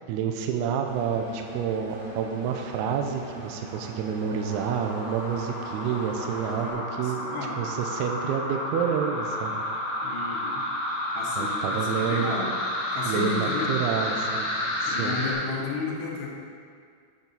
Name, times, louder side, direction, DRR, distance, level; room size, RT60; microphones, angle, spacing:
voice 1, 0.0-7.2 7.6-9.6 11.4-12.3 13.1-14.5 14.8-15.2, right 7 dB, 80° right, 4 dB, 2.4 m, -29 dB
Engine, 0.9-6.7, right 1 dB, 65° right, 2.0 m, -42 dB
sound 1, 4.4-15.3, left 1 dB, 60° left, 1.1 m, -31 dB
voice 2, 6.6-7.6 10.0-10.6 11.1-12.5 12.9-13.7 14.9-16.3, left 4 dB, 75° left, -3 dB, 3.3 m, -33 dB
8.6 x 7.4 x 4.0 m, 2.1 s
omnidirectional pair, 5.0 m